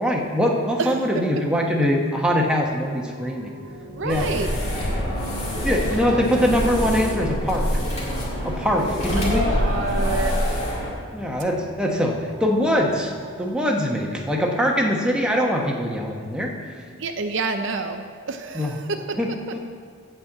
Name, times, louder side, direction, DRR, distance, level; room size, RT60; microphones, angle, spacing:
voice 1, 0.0-3.5 4.0-4.3 5.6-7.7 8.4-9.6 11.1-13.1 13.4-16.5 18.5-18.7 19.2-19.6, equal, 5° right, -1 dB, 1.0 m, -22 dB
voice 2, 0.8-1.4 4.0-4.5 5.9-6.5 9.2-10.6 17.0-19.6, right 3 dB, 55° right, 6 dB, 0.5 m, -29 dB
sound 1, 2.1-13.5, equal, 25° right, 1.2 m, -39 dB
sound 2, 4.1-10.9, equal, 30° left, 2.2 m, -25 dB
12.5 x 4.4 x 7.8 m, 2.2 s
head